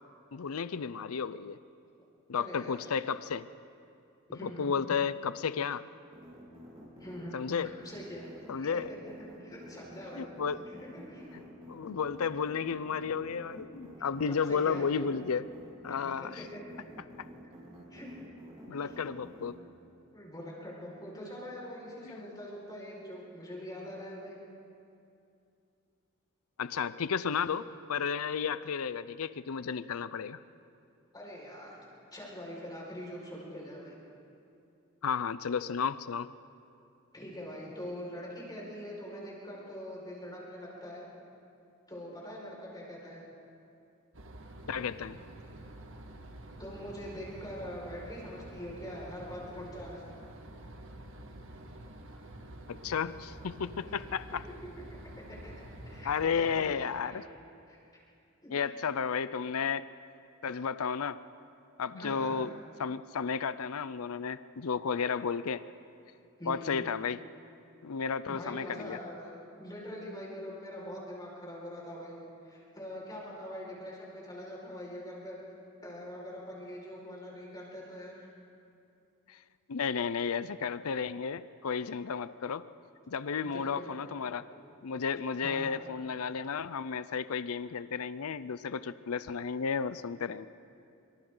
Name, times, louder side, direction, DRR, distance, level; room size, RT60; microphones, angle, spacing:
voice 1, 0.3-1.6 2.3-3.5 4.4-5.8 7.3-7.7 8.5-8.9 10.2-10.6 11.7-15.5 15.8-16.3 18.7-19.6 26.6-30.4 35.0-36.3 44.7-45.2 52.7-54.4 56.0-57.2 58.5-59.8 60.4-61.2 61.8-62.5 62.8-65.6 66.4-67.2 67.8-69.0 79.3-79.4 79.7-82.6 83.1-84.5 84.8-90.5, left 6 dB, 80° left, 14 dB, 0.5 m, -33 dB
voice 2, 2.3-3.0 4.3-4.7 7.0-7.4 7.8-8.2 8.5-9.1 9.4-10.3 10.7-11.3 14.3-14.8 15.9-16.6 17.9-18.1 18.9-19.0 20.1-24.4 27.2-27.4 31.1-31.8 32.1-33.9 37.1-41.1 41.9-43.2 46.6-50.1 53.8-53.9 55.3-57.2 57.7-57.8 58.4-58.5 62.0-62.3 66.4-66.7 68.3-72.2 72.4-75.4 75.8-78.1 83.3-84.1 85.4-85.7, equal, 20° left, -4 dB, 5.2 m, -43 dB
sound 1, 6.1-19.5, equal, 25° right, 6.4 m, -50 dB
sound 2, 44.1-56.7, right 1 dB, 65° right, 1.7 m, -48 dB
26.5 x 25.0 x 3.9 m, 2.6 s
head